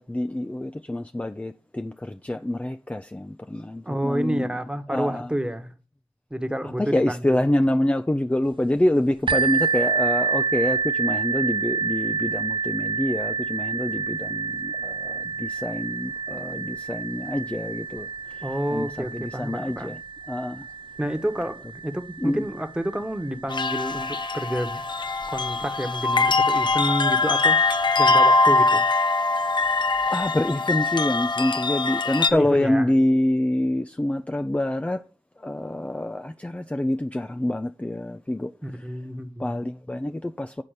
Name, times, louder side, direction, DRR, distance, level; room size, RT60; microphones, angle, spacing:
voice 1, 0.0-4.5 4.9-5.3 6.8-18.1 18.7-18.9 19.2-19.9 20.3-20.6 22.2-22.4 30.1-35.0 35.4-38.5 39.4-40.6, left 1 dB, 15° left, 0.5 m, -26 dB
voice 2, 3.8-5.7 6.3-7.4 18.4-20.0 21.0-24.8 25.3-28.9 32.3-32.9 38.6-39.6, equal, 10° right, 1.2 m, -29 dB
sound 1, 9.3-24.8 25.6-25.7 26.2-26.3, right 5 dB, 60° right, 0.4 m, -29 dB
sound 2, 23.5-32.3, left 3 dB, 55° left, 0.7 m, -22 dB
9.1 x 4.1 x 6.6 m
cardioid pair, 50°, 9 cm